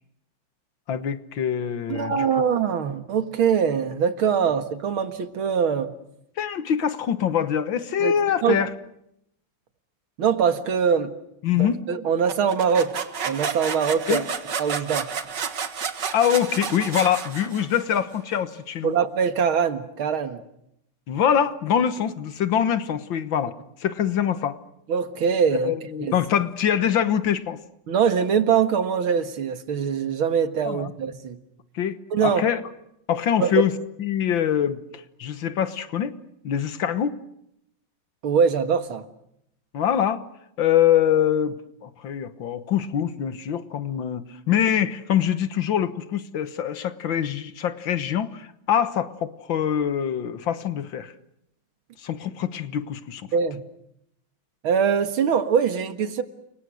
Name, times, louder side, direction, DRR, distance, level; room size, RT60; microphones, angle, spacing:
voice 1, 0.9-2.3 6.4-8.7 11.4-11.8 14.1-14.2 16.1-18.9 21.1-23.5 23.8-24.6 25.6-27.6 30.7-30.9 31.8-32.6 33.1-33.7 34.0-36.2 36.4-37.2 39.7-40.2 40.6-51.1 52.0-53.2, left 9 dB, 70° left, 12 dB, 2.0 m, -24 dB
voice 2, 1.9-5.9 8.0-8.1 8.4-8.6 10.2-11.1 11.6-14.2 14.6-15.1 18.8-20.4 24.9-25.7 26.0-26.2 27.9-31.4 32.1-32.5 33.4-33.6 38.2-39.1 53.3-53.6 54.6-56.2, right 7 dB, 90° right, 9 dB, 2.5 m, -23 dB
sound 1, 12.3-18.0, right 6 dB, 60° right, 2.2 m, -31 dB
30.0 x 24.5 x 6.4 m, 0.78 s
omnidirectional pair, 2.2 m